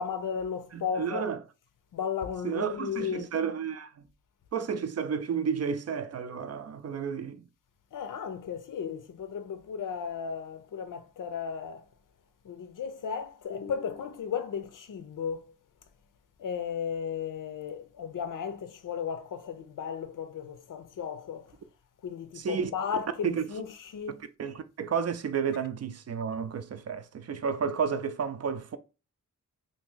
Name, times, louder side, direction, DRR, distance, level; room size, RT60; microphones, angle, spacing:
voice 1, 0.0-1.3 1.9-3.3 7.9-11.9 12.4-15.5 16.4-21.5 22.0-24.2, left 7 dB, 75° left, 0.6 m, -35 dB
voice 2, 0.7-1.4 2.4-3.9 4.5-7.5 22.4-22.7 23.2-23.5 24.4-28.8, right 6 dB, 50° right, 0.4 m, -31 dB
2.9 x 2.5 x 3.7 m
wide cardioid pair, 130°, 32 cm